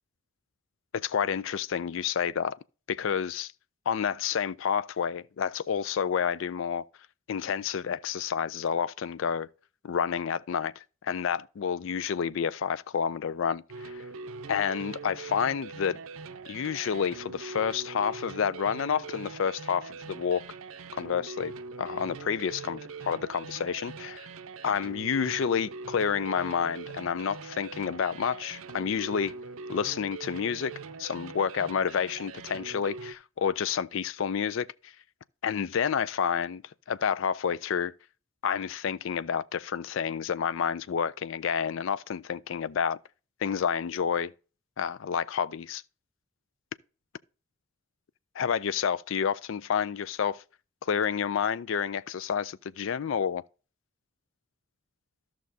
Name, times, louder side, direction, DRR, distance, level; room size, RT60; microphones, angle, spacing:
voice 1, 0.9-2.6 2.9-3.5 3.9-6.8 7.3-9.5 9.8-14.0 14.5-16.0 16.5-20.5 20.9-21.5 21.8-24.3 24.6-29.3 29.7-30.7 31.0-34.9 35.4-36.6 36.9-37.9 38.4-43.0 43.4-44.3 44.8-45.8 48.4-50.4 50.8-53.4, left 7 dB, 65° left, 0.4 m, -29 dB
sound 1, 13.7-33.1, right 4 dB, 75° right, 0.5 m, -42 dB
13.5 x 6.1 x 2.7 m
head